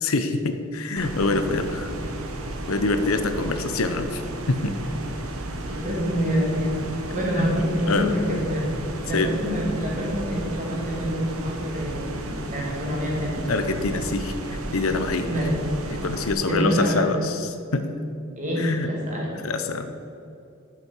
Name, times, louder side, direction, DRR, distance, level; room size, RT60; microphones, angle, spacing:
voice 1, 0.0-1.9 2.7-4.2 4.5-4.8 7.4-7.6 7.9-8.1 9.1-9.3 13.5-15.5 15.9-17.9 18.6-18.9 19.4-19.9, left 3 dB, 75° left, 8 dB, 0.7 m, -25 dB
sound 1, 1.0-16.3, right 1 dB, 75° right, 1.0 m, -33 dB
voice 2, 5.7-6.8 7.1-8.7 9.1-13.5 15.3-15.6 16.4-17.1 18.4-19.4, equal, 35° right, -3 dB, 2.4 m, -26 dB
9.7 x 7.3 x 4.7 m, 2.6 s
head